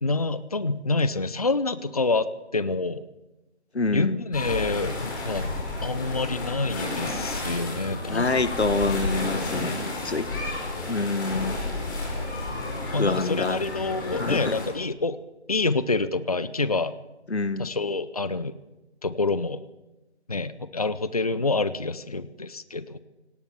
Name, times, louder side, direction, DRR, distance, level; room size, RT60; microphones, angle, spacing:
voice 1, 0.0-3.0 3.9-5.5 5.8-8.4 9.3-9.9 12.9-15.2 15.5-16.9 17.6-18.5 19.0-19.6 20.3-23.0, left 3 dB, 35° left, 15 dB, 0.7 m, -27 dB
voice 2, 3.7-4.2 8.1-10.3 10.9-11.6 13.0-13.6 14.1-14.5 17.3-17.7, left 3 dB, 75° left, 14 dB, 1.6 m, -26 dB
sound 1, 4.3-14.7, left 2 dB, 20° left, 5.4 m, -31 dB
24.0 x 18.5 x 7.3 m, 1.0 s
figure-of-eight pair, 165°, 34 cm